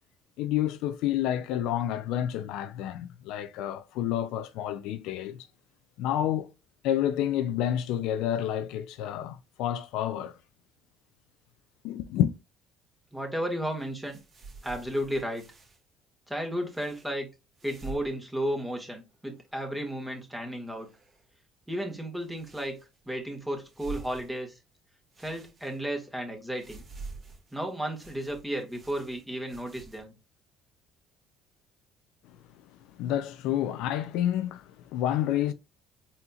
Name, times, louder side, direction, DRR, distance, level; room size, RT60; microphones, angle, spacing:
voice 1, 0.4-5.5 6.0-6.5 6.8-10.4 11.8-12.3 32.9-35.5, left 11 dB, 75° left, 0.4 m, -29 dB
voice 2, 13.1-14.2 14.6-15.4 16.3-17.3 17.6-20.9 21.7-22.8 23.1-24.6 25.2-26.8 27.5-30.1, equal, 5° right, 1.8 m, -33 dB
sound 1, 13.7-15.8 16.6-17.1 17.5-18.1 18.4-18.5 19.0-19.6 20.7-21.3 22.2-23.1 23.6-24.7 25.1-26.1 26.5-30.0, right 3 dB, 45° right, 2.0 m, -47 dB
4.2 x 4.2 x 2.3 m
supercardioid pair, 90°, 0 cm